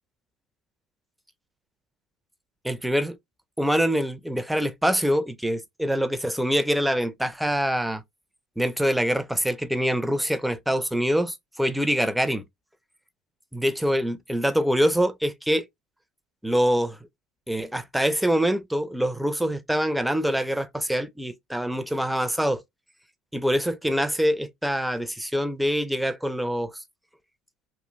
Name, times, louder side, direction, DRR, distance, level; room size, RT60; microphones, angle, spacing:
voice 1, 2.6-3.2 3.6-8.0 8.6-12.4 13.5-15.6 16.4-17.0 17.5-22.6 23.3-26.7, equal, ahead, 0.4 m, -25 dB
3.0 x 2.4 x 2.4 m
cardioid pair, 130°, 0 cm